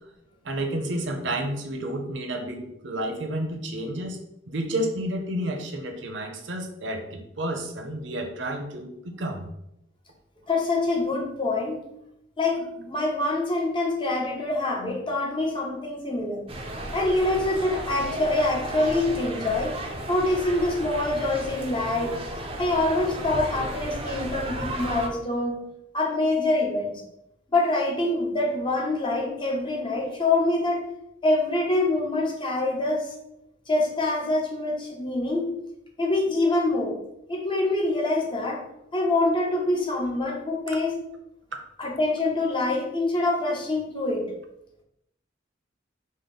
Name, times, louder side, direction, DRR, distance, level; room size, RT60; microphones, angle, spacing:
voice 1, 0.4-4.2 4.5-9.5, right 1 dB, 70° right, 4 dB, 0.7 m, -31 dB
voice 2, 10.5-11.8 12.4-16.5 16.9-19.8 20.1-22.1 22.6-25.6 25.9-27.0 27.5-30.8 31.2-33.1 33.7-35.5 36.0-36.9 37.3-38.6 38.9-41.0 41.8-44.3, left 2 dB, 25° left, 0 dB, 0.7 m, -25 dB
sound 1, 16.5-25.1, right 1 dB, 30° right, 0.5 m, -34 dB
5.0 x 2.1 x 4.1 m, 0.82 s
head